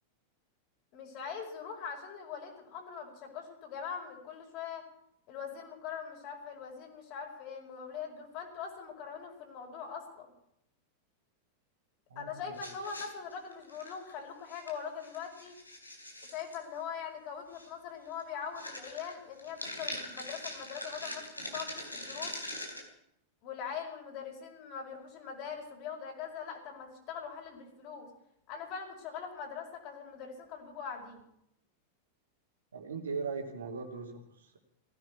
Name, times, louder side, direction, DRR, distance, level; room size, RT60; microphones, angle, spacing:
voice 1, 0.9-4.8 5.3-10.3 12.2-15.6 16.2-22.3 23.4-28.1 28.5-31.2, left 7 dB, 40° left, 1 dB, 5.4 m, -42 dB
voice 2, 12.1-12.6 32.7-34.6, right 5 dB, 70° right, 1 dB, 3.0 m, -39 dB
sound 1, 12.5-14.1 14.5-14.7 15.0-16.6 17.5-17.7 18.1-18.2 18.6-22.8, left 1 dB, 85° left, 3.7 m, -42 dB
19.0 x 15.5 x 4.6 m, 0.76 s
figure-of-eight pair, 90°, 0 cm